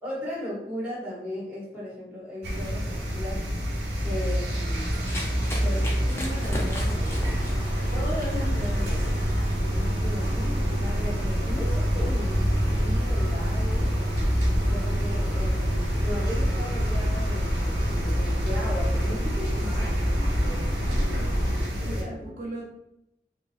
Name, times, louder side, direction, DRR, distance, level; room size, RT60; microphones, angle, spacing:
voice 1, 0.0-3.5 4.0-5.1 5.5-9.2 9.7-14.0 14.7-20.1 20.4-21.3 21.8-22.4, left 1 dB, 10° right, -7 dB, 0.9 m, -37 dB
sound 1, 2.4-22.0, equal, 75° right, 0.9 m, -29 dB
Run, 4.0-9.5, left 1 dB, 15° left, 0.4 m, -38 dB
sound 2, 5.7-21.6, equal, 80° left, 0.8 m, -28 dB
voice 2, 20.8-21.3 21.7-22.7, right 2 dB, 50° right, -4 dB, 0.5 m, -39 dB
3.1 x 2.3 x 2.4 m, 0.83 s
head